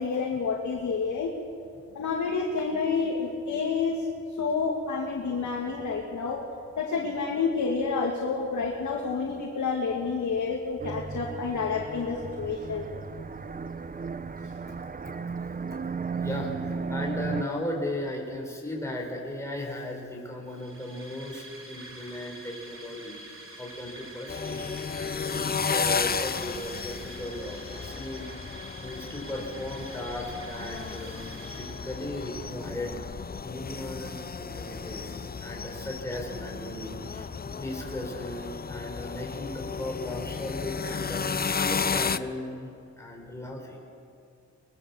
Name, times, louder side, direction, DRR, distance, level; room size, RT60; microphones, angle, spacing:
voice 1, 0.0-1.3 1.9-4.0 4.4-6.4 6.8-12.8, left 5 dB, 85° left, -2 dB, 2.4 m, -29 dB
sound 1, 10.8-17.4, right 5 dB, 30° right, 0.7 m, -35 dB
voice 2, 16.2-16.5 16.9-28.4 28.8-31.3 31.5-33.1 33.4-42.7 43.0-43.8, left 1 dB, 10° left, -1 dB, 5.1 m, -37 dB
sound 2, 20.5-32.3, right 1 dB, 45° right, 4.2 m, -46 dB
sound 3, 24.3-42.2, left 5 dB, 30° left, 0.6 m, -33 dB
23.5 x 21.0 x 7.3 m, 2.4 s
wide cardioid pair, 110°, 29 cm